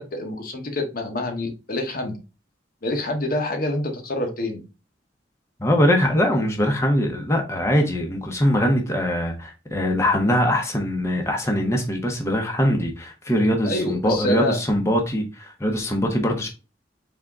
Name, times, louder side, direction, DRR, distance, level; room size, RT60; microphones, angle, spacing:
voice 1, 0.0-2.2 2.8-4.6 13.6-14.6, left 1 dB, 50° left, 0.9 m, -27 dB
voice 2, 5.6-16.5, equal, 15° left, 0.8 m, -22 dB
3.7 x 3.5 x 3.5 m
head